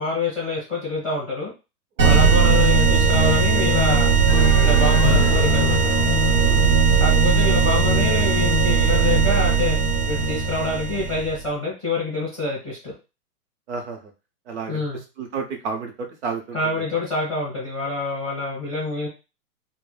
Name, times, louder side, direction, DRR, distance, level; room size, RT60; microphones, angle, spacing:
voice 1, 0.0-1.5 2.0-4.1 4.6-5.9 6.9-9.8 10.1-12.9 14.7-15.0 16.5-19.1, left 2 dB, ahead, -14 dB, 0.4 m, -26 dB
voice 2, 2.0-2.3 6.3-6.8 13.7-14.1 14.5-14.8 15.2-16.8, right 5 dB, 45° right, 3 dB, 0.6 m, -32 dB
sound 1, 2.0-11.4, right 5 dB, 85° right, 0.9 m, -18 dB
sound 2, 4.3-8.5, left 6 dB, 75° left, 0.6 m, -29 dB
2.0 x 2.0 x 3.2 m, 0.29 s
hypercardioid pair, 150°, 47 cm